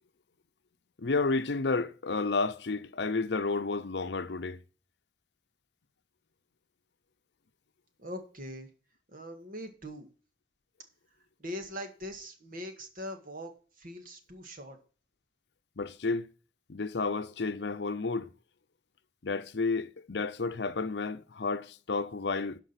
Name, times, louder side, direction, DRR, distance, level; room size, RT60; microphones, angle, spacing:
voice 1, 1.0-4.6 15.8-16.3 16.7-18.3 19.2-22.6, left 3 dB, 70° left, 0.7 m, -31 dB
voice 2, 8.0-8.7 9.1-10.1 11.4-13.5 13.8-14.8, equal, 50° right, 1.9 m, -41 dB
12.0 x 5.2 x 5.8 m
head